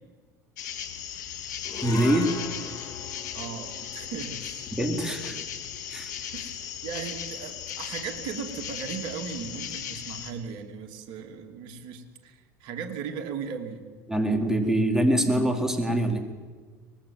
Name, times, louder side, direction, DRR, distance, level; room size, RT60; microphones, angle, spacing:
sound 1, 0.6-10.3, left 9 dB, 80° left, 2.3 m, -37 dB
sound 2, 1.6-8.1, left 7 dB, 40° left, 3.5 m, -42 dB
voice 1, 1.8-2.3 4.8-5.4 5.9-6.2 14.1-16.2, right 1 dB, 5° right, 4 dB, 4.2 m, -24 dB
voice 2, 3.3-4.7 6.3-6.5 6.8-13.9, right 6 dB, 60° right, 6 dB, 2.9 m, -37 dB
24.0 x 20.5 x 7.4 m, 1.5 s
hypercardioid pair, 80°, 9 cm